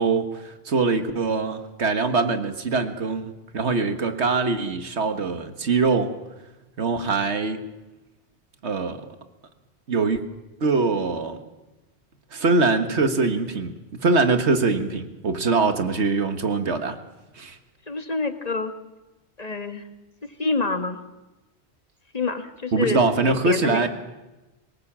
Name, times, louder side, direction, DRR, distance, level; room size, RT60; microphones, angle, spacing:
voice 1, 0.0-6.1 6.8-7.7 8.6-9.0 9.9-10.2 10.6-11.4 12.3-17.0 17.4-17.6 22.7-23.9, right 3 dB, 90° right, 8 dB, 1.9 m, -23 dB
voice 2, 17.9-18.7 19.4-19.8 20.4-21.0 22.1-23.9, left 3 dB, 35° left, 7 dB, 1.8 m, -27 dB
23.5 x 20.0 x 7.4 m, 1.0 s
omnidirectional pair, 1.1 m